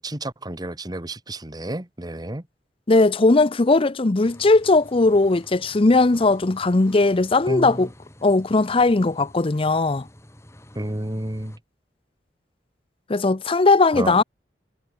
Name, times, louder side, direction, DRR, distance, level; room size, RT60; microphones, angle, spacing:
voice 1, 0.0-2.4 7.5-7.9 10.7-11.6 13.9-14.2, right 1 dB, 25° right, 1.5 m, -31 dB
voice 2, 2.9-7.9 8.2-10.1 13.1-14.2, left 3 dB, 30° left, 0.6 m, -18 dB
sound 1, 4.2-11.6, left 1 dB, 15° left, 3.7 m, -48 dB
head